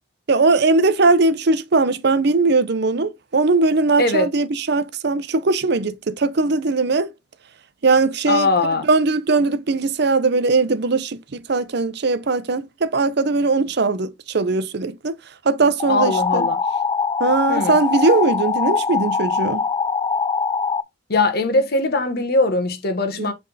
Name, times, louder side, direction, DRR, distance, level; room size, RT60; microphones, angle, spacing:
voice 1, 0.3-7.1 7.8-8.5 8.9-15.1 15.4-16.5 17.2-19.6 23.2-23.3, right 3 dB, 60° right, 0.6 m, -19 dB
voice 2, 4.0-4.3 8.3-8.9 15.9-16.6 17.5-17.8 21.1-23.3, left 2 dB, 55° left, 1.3 m, -20 dB
sound 1, 15.8-20.8, left 5 dB, 25° left, 0.3 m, -22 dB
7.5 x 3.5 x 4.0 m
head